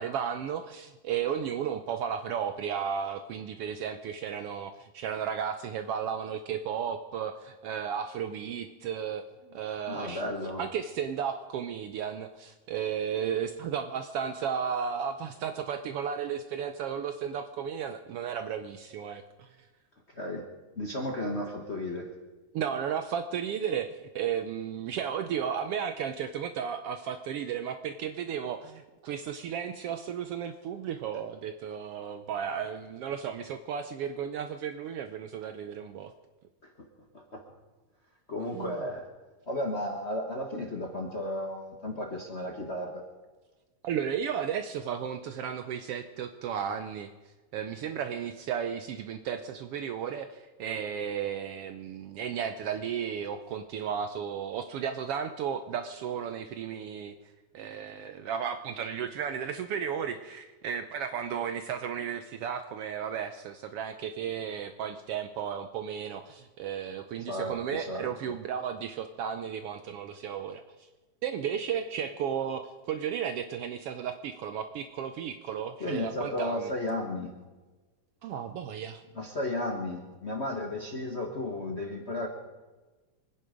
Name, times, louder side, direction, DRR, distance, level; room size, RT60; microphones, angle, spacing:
voice 1, 0.0-9.2 9.5-10.2 10.6-19.5 22.5-36.1 38.5-38.7 43.8-47.1 47.5-57.1 57.5-70.9 71.2-76.7 78.2-79.0, right 8 dB, 80° right, 9 dB, 1.3 m, -34 dB
voice 2, 9.9-10.6 20.1-20.4 20.7-22.1 36.6-36.9 37.1-37.4 38.3-39.1 39.5-43.0 67.3-68.1 75.8-77.3 79.1-82.3, left 1 dB, 45° left, 1 dB, 0.8 m, -34 dB
25.0 x 9.8 x 5.1 m, 1.2 s
omnidirectional pair, 3.3 m